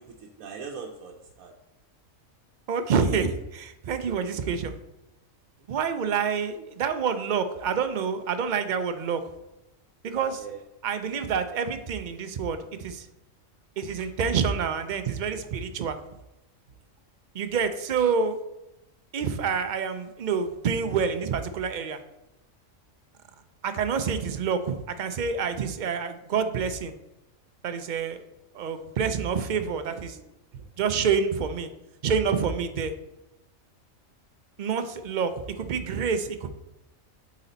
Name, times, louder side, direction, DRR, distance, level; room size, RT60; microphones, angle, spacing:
voice 1, 0.0-1.5 6.5-6.6 10.4-10.6 11.1-11.2 14.0-14.1 29.8-30.0 30.5-30.7, right 6 dB, 90° right, 0 dB, 1.1 m, -41 dB
voice 2, 2.7-4.7 5.7-9.2 10.0-10.4 10.8-13.1 13.8-16.0 17.3-18.4 19.1-22.0 23.6-26.9 27.6-28.2 28.5-30.2 30.8-31.7 32.0-32.9 34.6-36.5, right 6 dB, 60° right, 9 dB, 0.5 m, -27 dB
8.2 x 4.2 x 3.9 m, 0.92 s
omnidirectional pair, 1.4 m